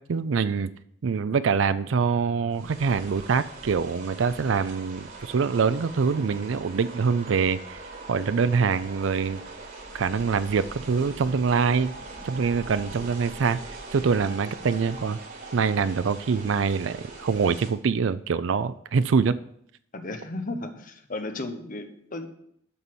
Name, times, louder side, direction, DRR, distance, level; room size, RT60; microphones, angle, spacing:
voice 1, 0.1-0.7 1.0-7.8 8.1-9.4 9.9-11.9 12.2-13.6 13.9-15.2 15.5-19.4, right 5 dB, 75° right, 14 dB, 0.4 m, -24 dB
sound 1, 2.5-17.7, right 2 dB, 50° right, 4.4 m, -42 dB
voice 2, 19.9-22.3, left 2 dB, 45° left, 7 dB, 1.2 m, -34 dB
12.5 x 4.1 x 7.7 m, 0.70 s
head